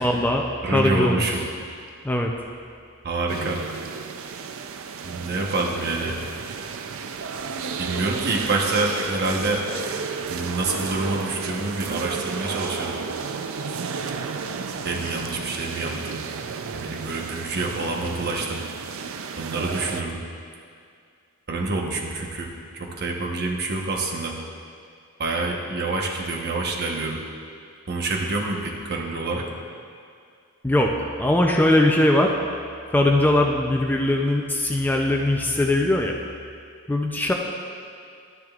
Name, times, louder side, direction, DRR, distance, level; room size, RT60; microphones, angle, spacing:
voice 1, 0.0-1.3 2.0-2.3 30.6-32.3 32.9-36.2 36.9-37.3, left 1 dB, 10° left, 1 dB, 0.4 m, -20 dB
voice 2, 0.6-1.4 3.0-3.6 5.0-6.2 7.8-9.7 10.3-13.0 14.8-16.2 16.6-18.6 19.4-20.2 21.5-24.4 25.2-27.2 27.9-29.5, right 2 dB, 50° right, 0 dB, 1.0 m, -27 dB
sound 1, 3.3-20.0, right 5 dB, 65° right, 0.5 m, -32 dB
12.0 x 11.0 x 2.4 m, 2.3 s
head